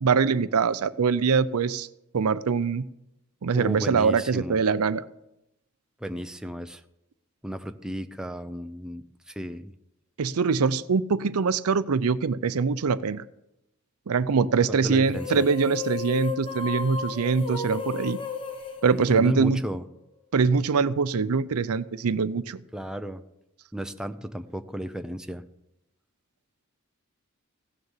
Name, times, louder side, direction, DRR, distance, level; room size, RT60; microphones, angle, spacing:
voice 1, 0.0-1.9 2.1-2.8 3.4-5.0 10.2-13.2 14.1-18.2 18.8-19.6 20.3-22.6, right 5 dB, 85° right, 16 dB, 0.5 m, -23 dB
voice 2, 3.5-4.6 6.0-6.8 7.4-9.7 14.7-15.4 19.1-19.8 22.7-23.2 23.7-25.4, equal, 5° right, 8 dB, 0.6 m, -34 dB
sound 1, 15.0-19.8, left 5 dB, 25° left, 1.0 m, -34 dB
16.0 x 6.6 x 7.3 m, 0.87 s
head